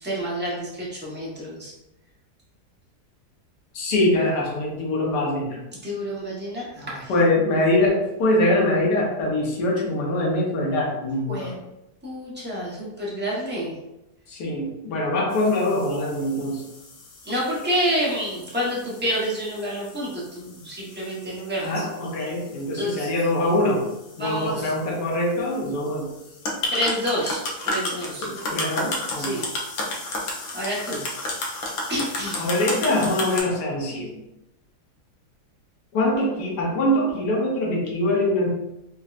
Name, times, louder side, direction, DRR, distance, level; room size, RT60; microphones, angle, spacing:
voice 1, 0.0-1.7 5.8-7.1 11.3-11.6 12.0-13.7 17.2-21.7 22.7-23.1 24.2-24.7 26.7-27.4 27.6-28.3 29.2-29.5 30.5-31.0 31.9-32.5, equal, 15° right, -7 dB, 0.4 m, -28 dB
voice 2, 3.7-5.6 7.1-11.5 14.3-16.6 21.6-23.8 24.2-26.1 28.2-29.3 32.4-34.1 35.9-38.5, left 1 dB, 80° left, -2 dB, 1.4 m, -23 dB
sound 1, 15.3-33.4, left 2 dB, 65° left, 1.1 m, -34 dB
4.1 x 2.1 x 2.4 m, 0.90 s
omnidirectional pair, 1.8 m